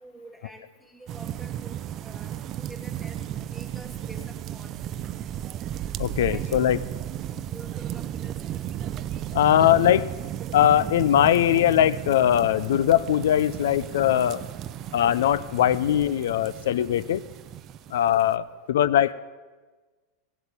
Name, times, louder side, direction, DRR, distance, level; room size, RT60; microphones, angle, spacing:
voice 1, 0.0-4.9 6.3-6.8 7.5-8.6, right 2 dB, ahead, 5 dB, 1.4 m, -47 dB
sound 1, 1.1-18.3, right 11 dB, 30° right, 0.5 m, -34 dB
voice 2, 6.0-6.8 9.3-10.1 10.5-14.4 14.9-17.2 17.9-19.1, left 11 dB, 85° left, 18 dB, 0.4 m, -21 dB
17.0 x 8.2 x 8.7 m, 1.3 s
supercardioid pair, 160°, 0 cm